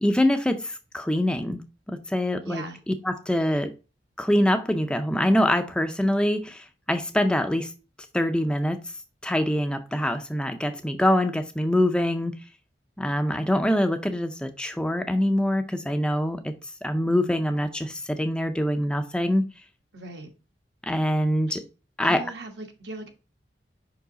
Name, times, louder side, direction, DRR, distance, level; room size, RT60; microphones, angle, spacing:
voice 1, 0.0-1.6 1.9-3.7 4.2-7.7 8.1-8.8 9.2-12.3 13.0-16.5 16.8-19.4 20.8-21.6 22.0-22.2, left 1 dB, 5° left, 0.4 m, -24 dB
voice 2, 2.4-2.8 19.9-20.3 21.5-21.6 22.0-23.1, right 2 dB, 65° right, 1.3 m, -38 dB
5.4 x 4.7 x 3.8 m
head